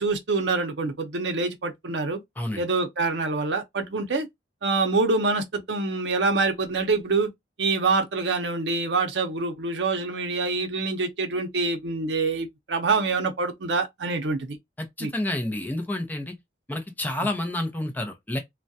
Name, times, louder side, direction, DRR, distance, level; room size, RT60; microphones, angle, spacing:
voice 1, 0.0-2.2 2.6-4.3 4.6-7.3 7.6-14.6 15.0-15.1, right 3 dB, 75° right, 0.6 m, -25 dB
voice 2, 14.8-16.3 16.7-18.4, left 1 dB, 10° left, 0.6 m, -29 dB
2.2 x 2.2 x 2.6 m
head